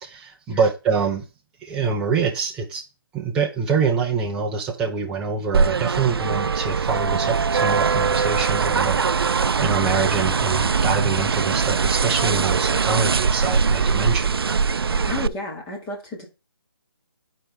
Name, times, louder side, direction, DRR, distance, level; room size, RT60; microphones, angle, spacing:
voice 1, 0.0-1.2 1.6-2.8 3.1-9.0 9.6-14.3, right 5 dB, 5° right, 0.5 m, -25 dB
sound 1, 5.5-15.3, right 5 dB, 85° right, 0.4 m, -21 dB
voice 2, 15.1-16.2, left 2 dB, 15° left, 1.8 m, -32 dB
10.0 x 4.6 x 3.3 m
figure-of-eight pair, 155°, 12 cm